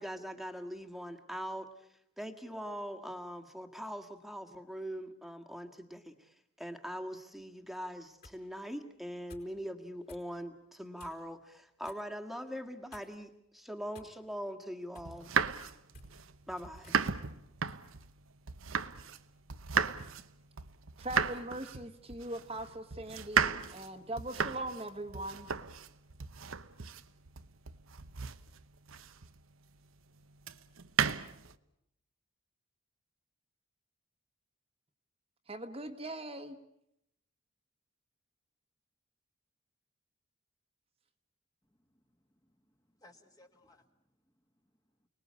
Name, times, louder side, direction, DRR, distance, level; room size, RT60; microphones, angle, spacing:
voice 1, 0.0-15.3 16.5-16.9, equal, ahead, 6 dB, 1.7 m, -42 dB
sound 1, 7.9-8.4 9.3-9.6 10.1-10.3 11.0-11.3 11.8-12.1 12.9-13.3 13.9-14.4 14.9-15.2 15.8-16.1 16.8-17.0 17.7-17.9, left 2 dB, 50° left, 4.7 m, -56 dB
sound 2, 15.1-19.2 19.5-29.4 30.4-31.6, right 6 dB, 80° right, 1.0 m, -35 dB
voice 2, 21.0-25.5 35.5-36.6, right 1 dB, 30° right, 5 dB, 1.4 m, -41 dB
voice 3, 41.8-42.2 42.4-43.9 44.3-44.4 45.0-45.1, left 2 dB, 15° left, 5 dB, 1.7 m, -63 dB
29.5 x 20.0 x 8.5 m, 0.78 s
head